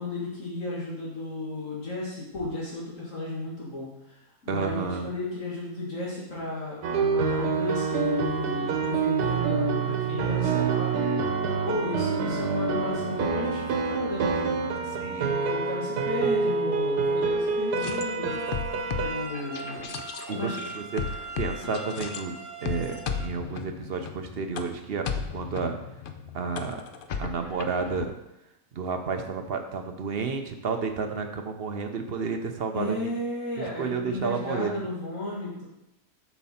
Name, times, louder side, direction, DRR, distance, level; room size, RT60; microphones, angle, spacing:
voice 1, 0.0-11.0 11.6-14.7 15.3-18.4 19.0-20.0 20.3-20.6 32.7-35.6, left 2 dB, 55° left, -6 dB, 2.2 m, -34 dB
voice 2, 4.5-5.1 14.8-15.4 20.3-21.1 21.4-22.4 22.6-25.8 26.3-26.8 27.2-28.2 28.7-33.0 33.8-34.9, right 5 dB, 55° right, 5 dB, 0.7 m, -31 dB
sound 1, 6.8-19.3, right 5 dB, 90° right, 1.4 m, -27 dB
sound 2, 17.7-22.2 22.6-28.0, left 6 dB, 75° left, 0.5 m, -35 dB
sound 3, 18.3-23.3, right 4 dB, 35° right, 1.2 m, -40 dB
7.1 x 5.9 x 4.3 m, 0.89 s
omnidirectional pair, 1.6 m